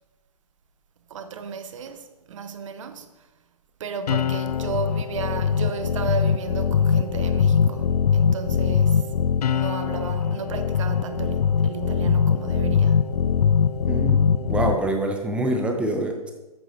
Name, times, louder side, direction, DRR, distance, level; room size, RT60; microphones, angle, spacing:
voice 1, 1.1-3.1 3.8-9.1 9.4-13.1, right 6 dB, 55° right, 0.9 m, -33 dB
sound 1, 4.1-14.7, left 7 dB, 80° left, 0.4 m, -22 dB
voice 2, 13.9-16.3, right 1 dB, 5° right, 0.7 m, -26 dB
11.0 x 8.0 x 2.7 m
hypercardioid pair, 135°, 20 cm